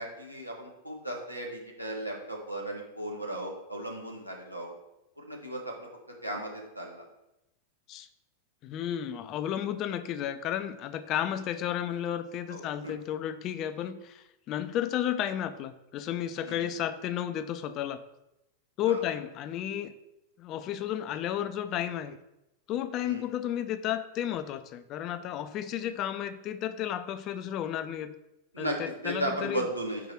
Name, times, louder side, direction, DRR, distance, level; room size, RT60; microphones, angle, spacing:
voice 1, 0.0-4.8 5.2-5.9 6.2-7.0 12.5-12.9 16.4-16.7 18.9-19.1 23.0-23.3 28.5-28.8 29.0-30.0, right 1 dB, 90° right, 0 dB, 1.1 m, -36 dB
voice 2, 8.6-18.0 18.8-19.9 20.4-22.2 22.7-28.1 28.6-29.7, left 10 dB, 35° left, 11 dB, 0.4 m, -32 dB
4.9 x 4.7 x 4.5 m, 0.91 s
figure-of-eight pair, 90°, 0 cm